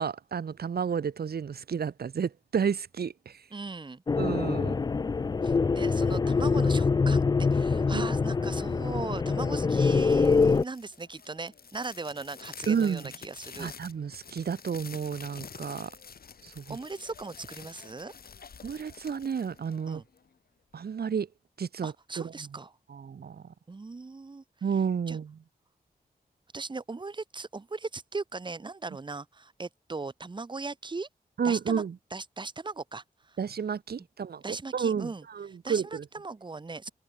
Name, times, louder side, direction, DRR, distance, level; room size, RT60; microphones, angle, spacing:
voice 1, 0.0-3.4 4.2-4.8 7.9-8.1 12.7-13.1 13.6-15.9 16.4-16.8 18.6-20.0 20.7-21.3 21.6-22.5 22.9-23.5 24.6-25.4 31.4-32.0 33.4-36.1, right 7 dB, 75° right, 1.9 m, -31 dB
voice 2, 3.5-4.0 5.4-13.7 16.7-18.1 19.9-20.0 21.8-22.7 23.7-24.4 25.1-25.2 26.5-31.1 31.4-31.8 32.1-33.4 34.4-35.2 35.6-36.9, right 3 dB, 30° right, 1.6 m, -38 dB
sound 1, 4.1-10.6, left 4 dB, 25° left, 0.3 m, -25 dB
sound 2, 10.0-20.3, left 6 dB, 70° left, 4.8 m, -48 dB
wide cardioid pair, 160°, 16 cm